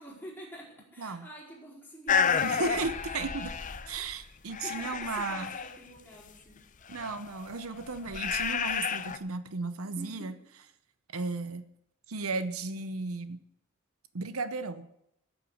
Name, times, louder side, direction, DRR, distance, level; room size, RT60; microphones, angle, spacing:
voice 1, 0.0-2.6 4.0-4.2 4.5-6.5 9.8-10.3, equal, 10° left, -5 dB, 4.7 m, -47 dB
voice 2, 1.0-1.3 2.4-3.5 3.9-5.5 6.9-10.3 11.1-11.7 12.1-13.4 14.1-14.9, right 3 dB, 80° right, 12 dB, 0.8 m, -35 dB
sound 1, 2.1-4.2 4.5-5.8 6.9-9.2, left 6 dB, 35° left, 0.7 m, -31 dB
14.5 x 8.3 x 6.4 m, 0.77 s
head